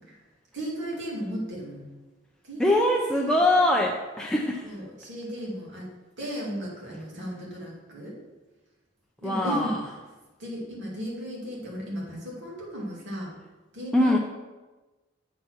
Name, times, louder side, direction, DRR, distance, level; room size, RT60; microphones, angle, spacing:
voice 1, 0.5-1.9 2.5-3.4 4.6-5.9 6.2-8.2 9.2-9.7 10.4-13.3 13.7-14.2, equal, 60° right, -4 dB, 2.3 m, -35 dB
voice 2, 2.6-4.6 9.2-9.8 13.9-14.2, left 1 dB, 5° left, -1 dB, 0.5 m, -22 dB
7.5 x 4.2 x 6.0 m, 1.2 s
head